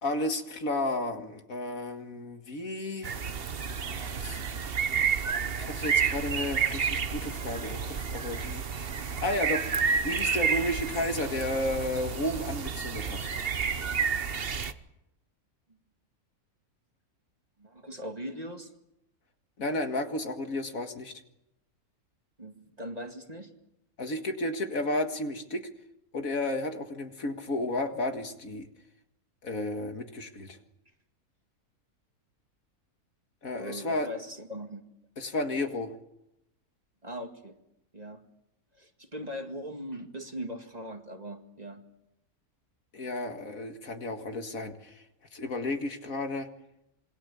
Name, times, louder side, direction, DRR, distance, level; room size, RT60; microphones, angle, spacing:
voice 1, 0.0-3.4 3.8-3.9 4.2-4.4 5.6-8.9 9.2-9.7 10.0-13.3 19.6-21.1 24.0-25.6 26.1-28.7 29.4-30.6 33.4-34.1 35.2-35.9 42.9-45.0 45.3-46.5, left 2 dB, 65° left, 5 dB, 2.3 m, -32 dB
sound 1, 3.0-14.7, right 6 dB, 45° right, 1.1 m, -30 dB
voice 2, 17.6-18.7 22.4-23.5 33.5-34.8 37.0-37.6 37.9-38.2 38.7-41.8, equal, 25° right, 4 dB, 2.1 m, -40 dB
27.0 x 22.0 x 7.1 m, 0.87 s
omnidirectional pair, 1.6 m